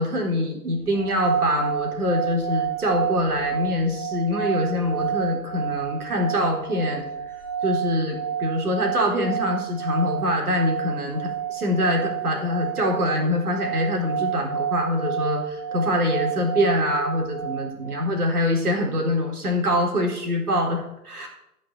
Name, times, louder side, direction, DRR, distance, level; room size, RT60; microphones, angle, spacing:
voice 1, 0.0-7.1 7.6-21.3, left 1 dB, 70° right, 1 dB, 4.1 m, -24 dB
sound 1, 0.9-18.1, right 8 dB, 15° right, 0.4 m, -30 dB
14.0 x 5.9 x 7.6 m, 0.82 s
figure-of-eight pair, 120°, 47 cm